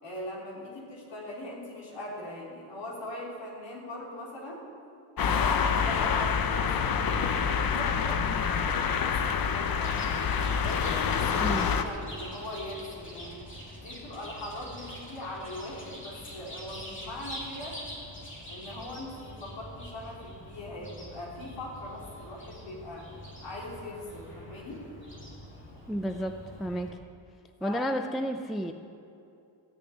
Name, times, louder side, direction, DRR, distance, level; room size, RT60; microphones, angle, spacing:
voice 1, 0.0-4.6 5.1-9.9 10.4-13.5 13.8-17.8 18.5-23.1 23.4-24.9 27.6-27.9, left 1 dB, 65° left, -4 dB, 3.9 m, -41 dB
sound 1, 5.2-11.8, left 6 dB, 50° left, 0.7 m, -27 dB
Chirp tweet, 9.7-26.9, equal, 25° left, 2.5 m, -45 dB
voice 2, 25.9-27.0 27.6-28.7, equal, ahead, 6 dB, 0.3 m, -31 dB
15.5 x 6.8 x 9.3 m, 2.6 s
wide cardioid pair, 175°, 47 cm